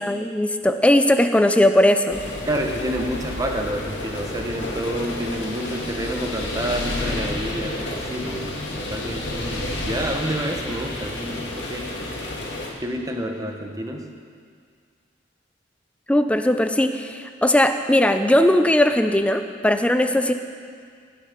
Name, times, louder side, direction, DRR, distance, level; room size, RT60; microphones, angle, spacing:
voice 1, 0.0-2.2 16.1-20.3, left 1 dB, 5° left, 7 dB, 0.5 m, -18 dB
sound 1, 2.1-12.7, left 1 dB, 75° left, 2.1 m, -30 dB
voice 2, 2.5-12.0 12.8-14.1, right 1 dB, 20° right, 3 dB, 1.1 m, -29 dB
16.0 x 9.5 x 5.1 m, 2.1 s
head